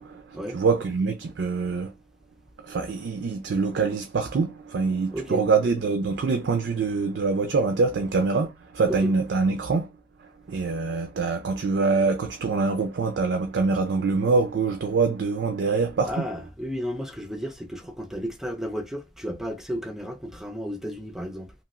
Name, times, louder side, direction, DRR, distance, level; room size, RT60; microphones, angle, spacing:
voice 1, 0.0-1.9 2.6-9.9 10.2-16.3, right 4 dB, 80° right, 0.4 m, -25 dB
voice 2, 5.1-5.4 8.9-9.1 16.1-21.5, equal, 5° right, 0.3 m, -33 dB
3.0 x 2.7 x 2.4 m
head